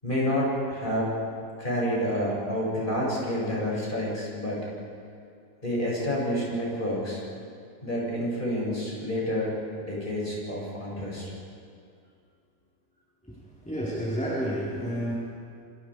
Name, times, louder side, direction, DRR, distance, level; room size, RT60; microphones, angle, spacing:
voice 1, 0.0-1.1 1.6-4.7 5.6-7.2 7.8-11.3, equal, 30° left, -5 dB, 7.7 m, -29 dB
voice 2, 13.6-15.1, equal, 5° left, -9 dB, 4.6 m, -30 dB
28.0 x 25.0 x 5.1 m, 2.4 s
omnidirectional pair, 1.7 m